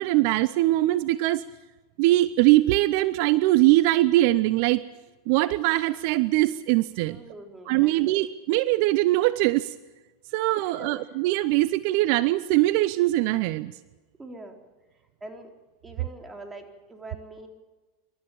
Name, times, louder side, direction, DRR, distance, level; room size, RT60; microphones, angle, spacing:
voice 1, 0.0-1.4 2.0-4.8 5.3-7.2 7.7-9.7 10.3-13.7, right 17 dB, 60° right, 17 dB, 0.6 m, -22 dB
voice 2, 7.1-8.2 10.6-10.9 14.2-14.6 14.9-15.5 15.8-17.5, right 2 dB, 15° right, 4 dB, 4.1 m, -44 dB
26.5 x 13.5 x 8.7 m, 1.2 s
hypercardioid pair, 100°, 0 cm